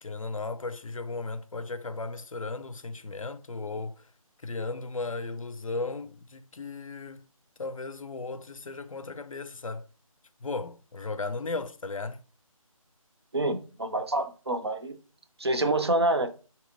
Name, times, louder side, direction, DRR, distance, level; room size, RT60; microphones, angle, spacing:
voice 1, 0.0-4.1 4.4-7.2 7.6-9.9 10.4-12.2, left 3 dB, 65° left, 0.4 m, -36 dB
voice 2, 13.3-15.0 15.4-16.3, right 2 dB, 45° right, 0.5 m, -27 dB
3.1 x 2.9 x 3.4 m
figure-of-eight pair, 160°, 18 cm